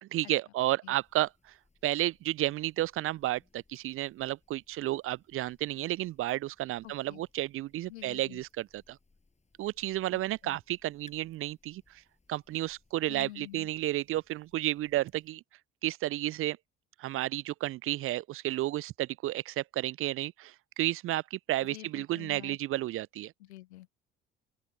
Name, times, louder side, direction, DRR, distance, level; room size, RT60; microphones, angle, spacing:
voice 1, 0.0-1.3 1.8-9.0 9.6-12.0 12.3-15.4 15.8-16.6 17.0-23.3, right 15 dB, 40° right, 0.4 m, -32 dB
sound 1, 1.0-15.3, left 3 dB, 20° left, 6.8 m, -65 dB
voice 2, 6.8-7.2 7.9-8.4 10.1-10.6 13.1-13.7 21.6-22.6 23.4-23.9, left 16 dB, 80° left, 0.9 m, -48 dB
open air
figure-of-eight pair, 55°, 33 cm